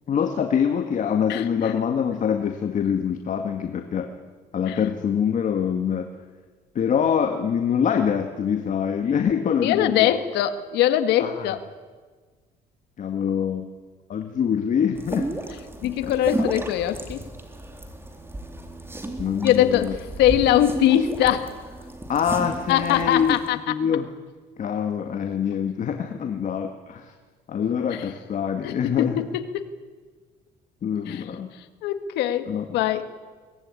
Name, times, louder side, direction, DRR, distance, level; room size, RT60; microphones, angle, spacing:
voice 1, 0.1-4.1 4.5-6.1 6.8-10.1 11.2-11.6 13.0-13.7 14.1-15.3 15.8-16.5 19.2-19.9 22.1-23.4 23.7-24.1 24.6-27.1 27.5-29.3 30.8-31.5 32.5-32.6, left 7 dB, 50° left, 5 dB, 2.0 m, -25 dB
voice 2, 1.3-1.7 4.7-4.8 9.6-11.6 15.8-17.2 19.4-19.9 20.2-21.5 22.7-23.6 27.9-28.0 28.6-29.3 31.1-31.3 31.8-33.1, left 12 dB, 85° left, 9 dB, 1.8 m, -22 dB
sound 1, 14.9-23.5, right 1 dB, 15° right, 3.6 m, -33 dB
23.0 x 19.0 x 9.9 m, 1.4 s
cardioid pair, 110°, 17 cm